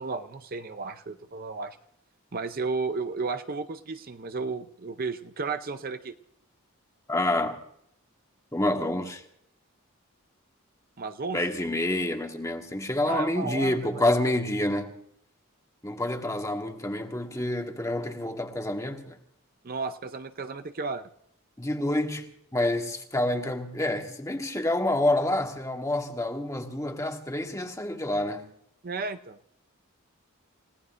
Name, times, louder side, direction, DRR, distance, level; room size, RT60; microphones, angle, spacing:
voice 1, 0.0-1.8 2.3-6.2 11.0-11.4 13.1-14.0 19.6-21.1 28.8-29.4, right 4 dB, 45° right, 0.6 m, -33 dB
voice 2, 7.1-7.6 8.5-9.2 11.3-14.9 15.8-19.2 21.6-28.5, left 1 dB, 15° left, 1.5 m, -28 dB
30.0 x 17.0 x 2.6 m
head